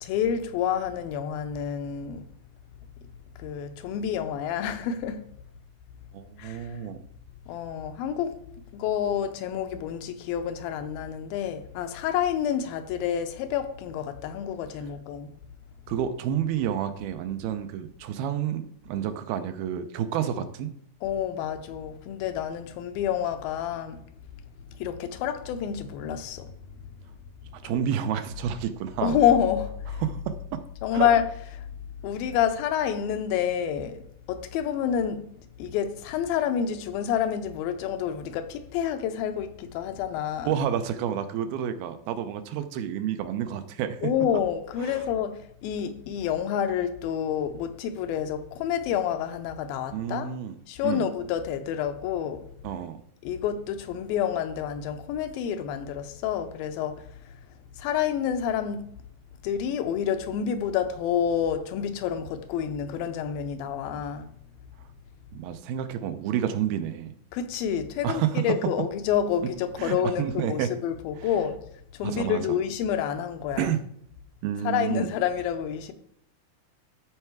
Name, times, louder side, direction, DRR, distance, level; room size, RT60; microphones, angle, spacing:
voice 1, 0.0-2.3 3.4-5.2 6.4-6.8 7.5-8.4 8.7-15.3 21.0-24.0 24.7-26.5 27.7-27.8 29.0-30.0 30.8-31.2 31.6-31.7 32.0-35.2 35.6-40.5 44.0-50.3 50.7-52.4 53.2-57.4 57.8-58.9 59.4-64.3 67.3-71.6 71.9-73.7 74.6-75.9, left 9 dB, 80° left, 2.5 m, -28 dB
voice 2, 6.1-7.0 15.9-20.7 27.5-29.2 30.0-30.6 30.9-31.1 40.4-44.0 44.8-45.0 49.9-50.6 50.8-51.1 52.6-53.0 65.3-67.1 68.0-68.5 69.8-70.7 72.0-72.4 73.6-73.8 74.4-75.1, right 9 dB, 85° right, 2.6 m, -29 dB
13.0 x 4.6 x 4.6 m
omnidirectional pair, 4.3 m